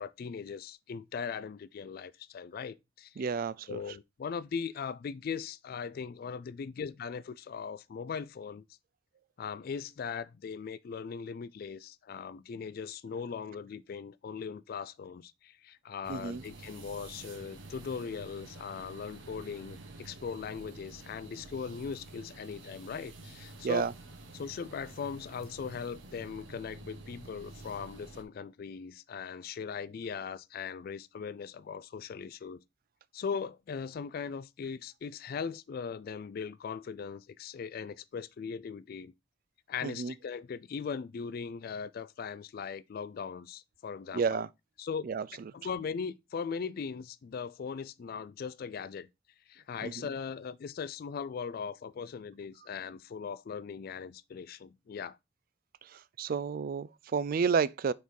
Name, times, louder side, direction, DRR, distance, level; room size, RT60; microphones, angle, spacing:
voice 1, 0.0-3.2 3.7-8.7 9.4-23.9 24.3-32.6 33.1-39.1 39.7-44.4 44.8-45.1 45.5-49.1 49.5-55.2, left 6 dB, 50° left, 0.3 m, -39 dB
voice 2, 3.2-3.8 16.1-16.4 23.6-23.9 39.8-40.1 44.1-44.5 45.0-45.3 49.8-49.9 55.8-57.9, right 5 dB, 45° right, 0.3 m, -31 dB
sound 1, 16.0-28.2, right 2 dB, 75° right, 1.0 m, -49 dB
5.3 x 4.4 x 4.5 m
head